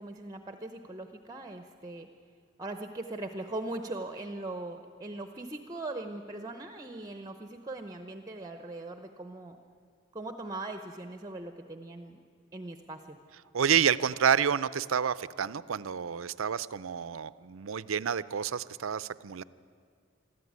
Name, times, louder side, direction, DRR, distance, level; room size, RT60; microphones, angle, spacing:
voice 1, 0.0-2.1 2.6-9.6 10.1-12.2 12.5-13.2, right 2 dB, 20° right, 7 dB, 0.8 m, -40 dB
voice 2, 13.5-19.4, right 7 dB, 75° right, 16 dB, 0.5 m, -29 dB
22.5 x 14.0 x 9.5 m, 2.2 s
head